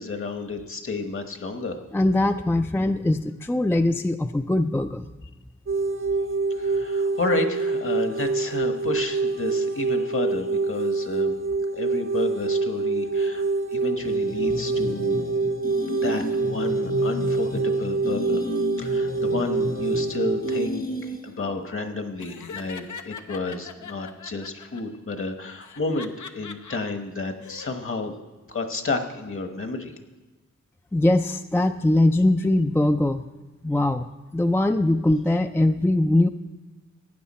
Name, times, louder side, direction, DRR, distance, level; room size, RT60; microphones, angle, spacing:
voice 1, 0.0-1.8 6.6-11.3 11.7-13.4 13.7-15.2 15.9-18.5 18.8-28.1 28.5-29.9, left 3 dB, 45° left, 6 dB, 1.2 m, -31 dB
voice 2, 1.9-5.1 30.9-33.2 33.6-36.3, left 1 dB, 10° left, 7 dB, 0.4 m, -21 dB
sound 1, 5.7-20.7, right 3 dB, 45° right, 0.6 m, -25 dB
sound 2, 14.0-21.5, left 1 dB, 30° left, 0.9 m, -33 dB
Laughter, 22.2-24.8 25.6-26.8 27.3-27.7, left 6 dB, 80° left, 0.8 m, -40 dB
15.5 x 9.2 x 4.3 m, 1.2 s
wide cardioid pair, 80°, 30 cm